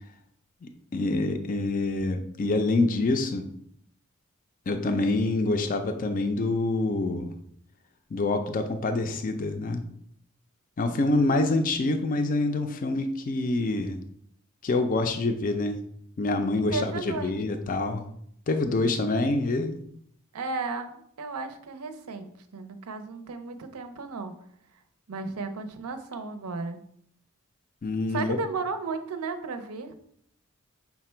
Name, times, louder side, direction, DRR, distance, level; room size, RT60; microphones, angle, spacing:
voice 1, 0.6-3.5 4.7-7.3 8.1-9.8 10.8-14.0 14.6-15.8 16.2-18.1 18.5-19.8 27.8-28.4, left 2 dB, 35° left, 7 dB, 0.4 m, -26 dB
voice 2, 16.6-17.6 20.3-24.3 25.1-26.8 28.1-29.9, right 4 dB, 85° right, 8 dB, 0.5 m, -34 dB
5.7 x 2.2 x 4.3 m, 0.68 s
head